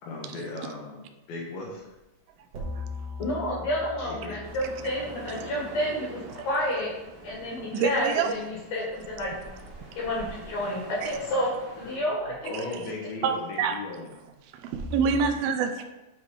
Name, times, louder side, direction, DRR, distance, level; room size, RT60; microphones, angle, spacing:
voice 1, 0.0-1.9 4.0-4.4 7.6-7.7 12.4-14.1, left 2 dB, 80° left, -3 dB, 3.1 m, -37 dB
sound 1, 2.5-7.0 12.1-12.3 14.7-15.3, left 2 dB, 65° right, 2.9 m, -40 dB
voice 2, 3.2-6.9 7.2-9.3 9.9-11.5 11.8-12.3, left 1 dB, 55° left, -3 dB, 2.4 m, -30 dB
sound 2, 4.4-12.0, right 1 dB, 45° right, 1.6 m, -45 dB
voice 3, 7.7-8.3 11.0-11.1 13.2-13.8 14.6-15.8, right 6 dB, 90° right, 5 dB, 2.5 m, -26 dB
9.3 x 3.7 x 4.7 m, 1.0 s
omnidirectional pair, 4.2 m